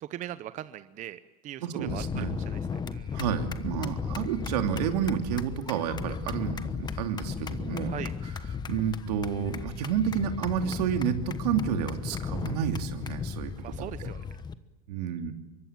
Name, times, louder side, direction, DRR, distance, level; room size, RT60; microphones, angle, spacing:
voice 1, 0.0-2.6 2.9-3.2 7.8-8.1 13.6-14.2, right 12 dB, 40° right, 13 dB, 0.9 m, -40 dB
voice 2, 1.6-2.4 3.1-7.9 8.7-14.1 14.9-15.3, right 8 dB, 80° right, 5 dB, 2.9 m, -30 dB
sound 1, 1.9-14.5, left 6 dB, 20° left, 1.2 m, -35 dB
25.5 x 23.0 x 7.5 m, 1.1 s
supercardioid pair, 120°, 20 cm